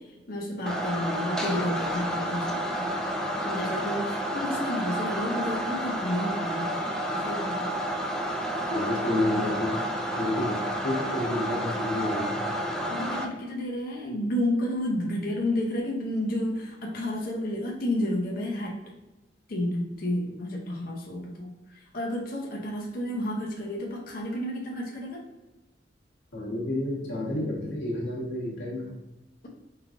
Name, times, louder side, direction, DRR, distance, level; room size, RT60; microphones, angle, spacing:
voice 1, 0.0-2.9 3.4-6.7 7.1-7.8 12.9-18.7 19.5-25.2, left 1 dB, 50° left, -2 dB, 0.7 m, -31 dB
sound 1, 0.7-13.2, equal, 5° left, 0.3 m, -30 dB
voice 2, 8.7-9.8 10.1-12.5 26.3-28.9, left 1 dB, 85° left, -4 dB, 1.5 m, -30 dB
4.6 x 3.2 x 2.5 m, 1.0 s
head